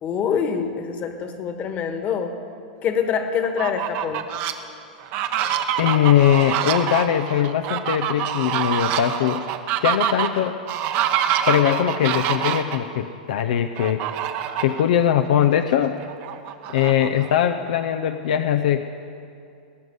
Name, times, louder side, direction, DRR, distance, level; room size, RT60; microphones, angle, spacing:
voice 1, 0.0-2.3 2.8-4.2, left 7 dB, 35° left, 6 dB, 1.6 m, -25 dB
Fowl, 3.4-4.5 5.0-12.8 13.8-14.8 15.3-15.4 15.7-17.5, right 10 dB, 45° right, 1.0 m, -26 dB
voice 2, 5.8-9.4 9.8-10.6 11.5-14.1 14.6-16.0 16.7-18.8, left 10 dB, 70° left, 7 dB, 0.6 m, -21 dB
19.0 x 6.4 x 9.4 m, 2.5 s
hypercardioid pair, 120°, 4 cm